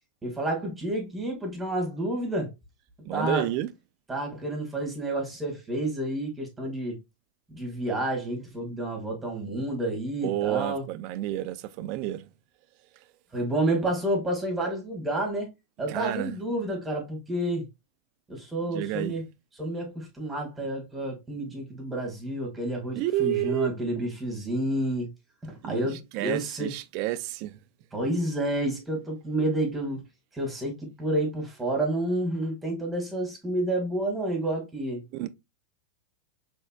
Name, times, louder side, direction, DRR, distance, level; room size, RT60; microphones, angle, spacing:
voice 1, 0.2-2.5 3.1-3.5 4.1-7.0 7.5-10.8 13.3-15.5 15.8-17.7 18.3-19.2 19.6-25.1 25.4-26.7 27.9-30.0 30.3-35.0, right 1 dB, 15° right, 1.9 m, -29 dB
voice 2, 3.0-3.7 10.2-12.3 15.9-16.3 18.7-19.2 22.9-24.0 25.6-27.6 35.1-35.3, right 14 dB, 55° right, 0.4 m, -30 dB
4.2 x 3.5 x 2.3 m
hypercardioid pair, 95°, 0 cm